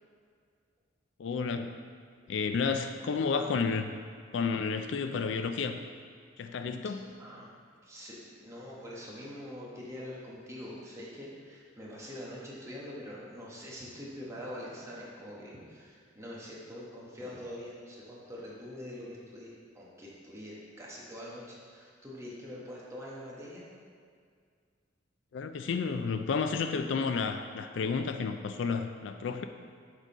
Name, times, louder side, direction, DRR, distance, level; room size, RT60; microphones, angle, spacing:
voice 1, 1.2-1.8 2.3-3.9 4.3-5.8 6.4-7.1 25.3-29.4, left 5 dB, 75° left, 8 dB, 0.4 m, -31 dB
voice 2, 7.8-23.7, left 1 dB, 15° right, -6 dB, 1.3 m, -44 dB
6.4 x 3.8 x 5.0 m, 2.1 s
head